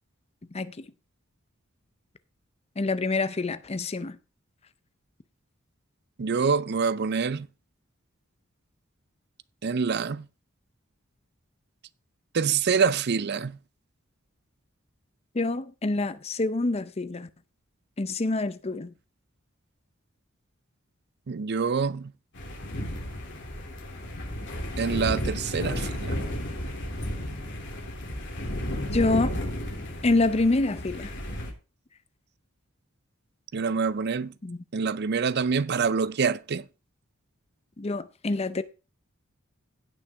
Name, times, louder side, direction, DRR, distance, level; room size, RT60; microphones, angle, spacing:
voice 1, 0.5-0.9 2.8-4.2 15.3-17.3 18.0-18.9 28.9-29.3 30.0-31.1 34.4-34.6 37.8-38.6, left 2 dB, 30° left, 0.6 m, -26 dB
voice 2, 6.2-7.5 9.6-10.3 12.3-13.6 21.3-22.1 24.8-26.2 33.5-34.3 34.7-36.6, right 5 dB, 55° right, 0.5 m, -26 dB
sound 1, 22.3-31.5, equal, 60° left, 2.9 m, -33 dB
16.5 x 5.8 x 3.5 m
head